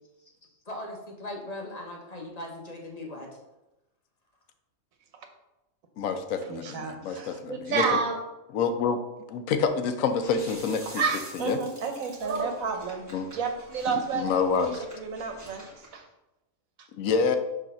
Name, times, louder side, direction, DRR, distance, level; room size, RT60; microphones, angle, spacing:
voice 1, 0.7-3.3, left 1 dB, 35° left, 0 dB, 1.0 m, -39 dB
voice 2, 6.0-8.0 8.5-9.0 9.3-11.0 11.3-11.6 13.1-13.3 13.9-14.8 16.9-17.4, left 5 dB, 80° left, 8 dB, 1.0 m, -27 dB
voice 3, 6.5-8.2 10.9-13.0 13.3-14.3 14.9-15.7 15.9-16.0, right 5 dB, 90° right, 5 dB, 1.3 m, -30 dB
sound 1, 10.2-16.0, right 1 dB, 15° right, 1.8 m, -48 dB
6.4 x 3.2 x 5.6 m, 0.97 s
omnidirectional pair, 1.4 m